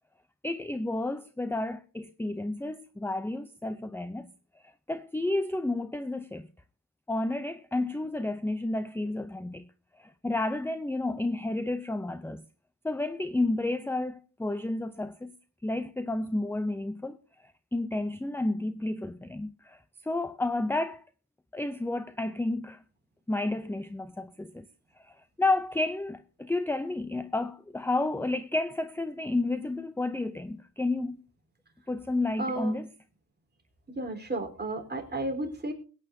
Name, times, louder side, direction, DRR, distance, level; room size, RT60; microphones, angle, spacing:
voice 1, 0.4-4.3 4.6-6.5 7.1-9.7 10.0-12.4 12.8-15.3 15.6-17.2 17.7-21.0 21.5-22.8 23.3-24.7 25.0-31.2 31.9-32.9, left 2 dB, 5° left, 0.6 m, -31 dB
voice 2, 32.4-32.7 33.9-35.7, right 2 dB, 25° right, 4.0 m, -33 dB
22.0 x 9.0 x 2.7 m
wide cardioid pair, 125°, 37 cm